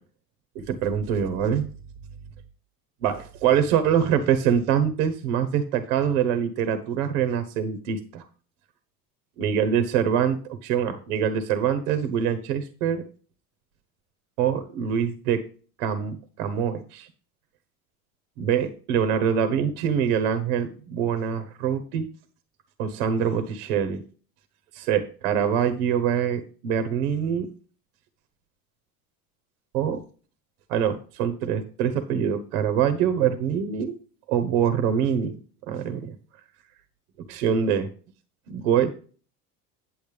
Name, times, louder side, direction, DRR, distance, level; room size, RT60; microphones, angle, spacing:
voice 1, 0.7-1.7 3.0-8.2 9.4-13.0 14.4-15.4 15.8-17.1 18.4-22.1 22.8-24.0 24.7-27.5 29.7-30.0 30.7-33.9 34.3-35.4 35.7-36.2 37.3-37.9 38.5-38.9, right 8 dB, 75° right, 11 dB, 1.2 m, -24 dB
9.0 x 7.7 x 3.4 m, 0.39 s
hypercardioid pair, 85°, 45 cm